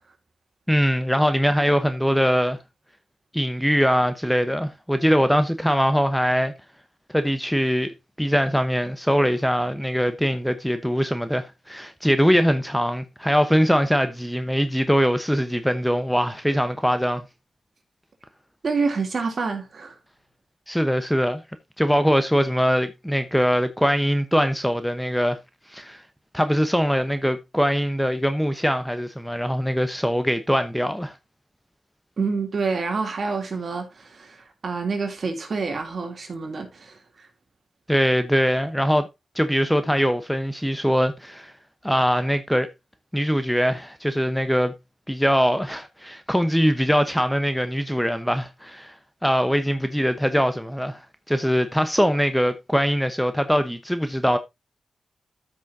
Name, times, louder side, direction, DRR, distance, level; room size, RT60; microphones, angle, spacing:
voice 1, 0.7-2.6 3.3-6.5 7.1-17.2 20.7-21.4 21.8-25.4 25.7-26.0 26.3-31.1 37.9-39.1 39.4-41.5 41.8-42.7 43.1-44.7 45.1-51.0 51.3-54.4, equal, ahead, 0.9 m, -22 dB
voice 2, 18.6-19.9 32.2-37.3, right 4 dB, 55° right, 2.8 m, -27 dB
13.5 x 6.2 x 2.7 m
cardioid pair, 90°, 0 cm